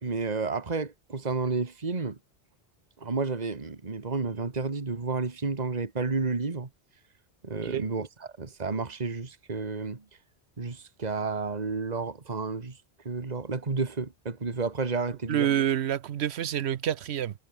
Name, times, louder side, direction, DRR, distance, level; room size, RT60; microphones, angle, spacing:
voice 1, 0.0-2.2 3.0-6.7 7.4-10.0 10.6-12.8 13.1-15.5, right 4 dB, 40° right, 1.8 m, -31 dB
voice 2, 15.3-17.3, right 10 dB, 80° right, 1.0 m, -27 dB
omnidirectional pair, 1.1 m